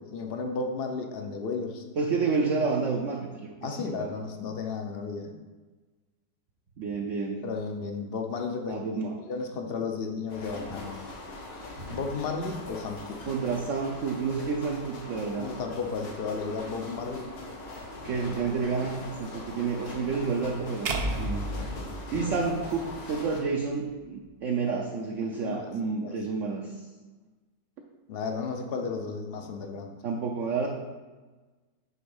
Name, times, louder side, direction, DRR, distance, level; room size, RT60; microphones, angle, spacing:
voice 1, 0.0-1.8 3.6-5.3 7.4-8.9 9.2-11.0 11.9-13.2 15.4-17.3 18.3-18.4 22.2-22.3 25.4-25.7 26.0-26.2 28.1-29.9, left 4 dB, 55° left, 4 dB, 0.6 m, -33 dB
voice 2, 2.0-3.3 3.7-4.1 6.8-7.5 8.7-9.1 13.3-15.5 18.0-20.9 21.2-21.5 22.1-26.8 30.0-30.7, right 4 dB, 60° right, 1 dB, 0.9 m, -29 dB
sound 1, 10.3-23.4, left 2 dB, 90° left, 1.9 m, -41 dB
sound 2, 20.9-23.1, right 2 dB, 75° right, 0.5 m, -33 dB
8.6 x 3.9 x 5.4 m, 1.3 s
omnidirectional pair, 1.9 m